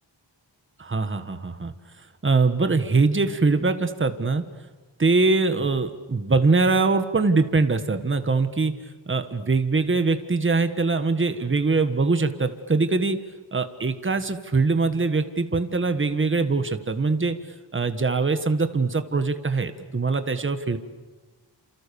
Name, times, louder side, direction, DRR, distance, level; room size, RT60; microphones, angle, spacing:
voice 1, 0.8-1.7 2.2-4.4 5.0-8.7 9.1-13.2 13.5-17.4 17.7-20.8, right 3 dB, 25° right, 9 dB, 1.5 m, -22 dB
28.5 x 27.5 x 7.0 m, 1.3 s
wide cardioid pair, 160°, 45 cm